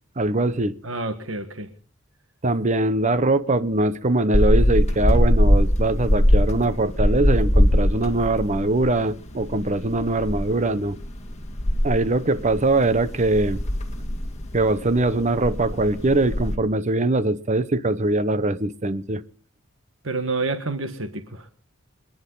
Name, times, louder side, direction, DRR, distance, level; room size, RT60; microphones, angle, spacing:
voice 1, 0.2-0.7 2.4-11.0 11.8-13.6 14.5-19.2, right 2 dB, 35° right, 0.8 m, -22 dB
voice 2, 0.8-1.7 20.0-21.5, right 3 dB, 70° right, 1.5 m, -28 dB
sound 1, 4.3-16.6, equal, 35° left, 2.1 m, -22 dB
29.5 x 10.5 x 3.9 m
head